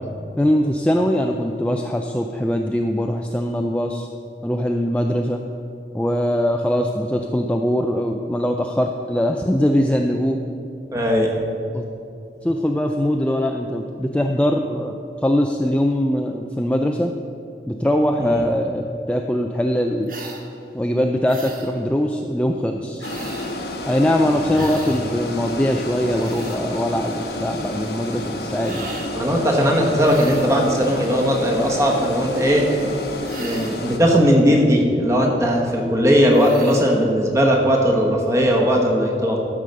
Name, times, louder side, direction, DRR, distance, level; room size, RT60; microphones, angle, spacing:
voice 1, 0.4-4.1 4.4-5.4 5.9-10.4 11.7-11.8 12.4-14.9 15.2-17.1 17.7-20.1 20.7-23.1 23.9-28.9, equal, 5° left, 2 dB, 0.3 m, -21 dB
voice 2, 10.9-11.3 18.2-18.4 29.1-32.7 33.3-39.4, equal, 15° right, 0 dB, 1.2 m, -18 dB
sound 1, 20.1-20.4 21.3-21.7 23.0-23.6 24.5-25.0 25.9-26.6 28.6-29.1 30.0-30.6 33.2-33.9 36.3-36.9, right 3 dB, 50° right, 1.1 m, -37 dB
sound 2, 23.0-34.0, left 1 dB, 70° left, 1.1 m, -30 dB
12.5 x 4.9 x 6.6 m, 2.7 s
head